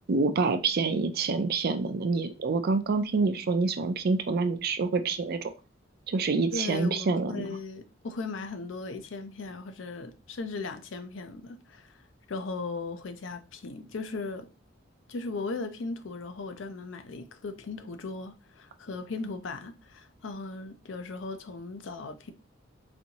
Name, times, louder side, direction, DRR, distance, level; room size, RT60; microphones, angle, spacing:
voice 1, 0.1-5.5 6.1-7.5, right 4 dB, 55° right, 0.4 m, -27 dB
voice 2, 6.5-14.5 15.1-22.3, left 3 dB, 70° left, 0.5 m, -37 dB
4.2 x 2.7 x 2.8 m
head